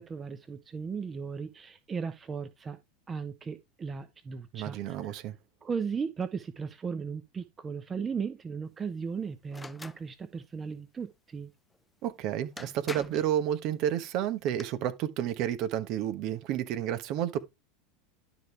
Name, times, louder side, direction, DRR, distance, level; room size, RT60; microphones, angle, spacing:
voice 1, 0.0-2.8 3.1-5.1 5.6-11.5, right 5 dB, 25° right, 1.0 m, -36 dB
voice 2, 4.5-5.4 12.0-17.4, right 10 dB, 50° right, 1.3 m, -31 dB
sound 1, 9.5-10.0 12.1-12.2 12.6-13.3 14.2-14.6, left 3 dB, 10° left, 0.6 m, -43 dB
12.0 x 5.0 x 3.4 m
hypercardioid pair, 85°, 0 cm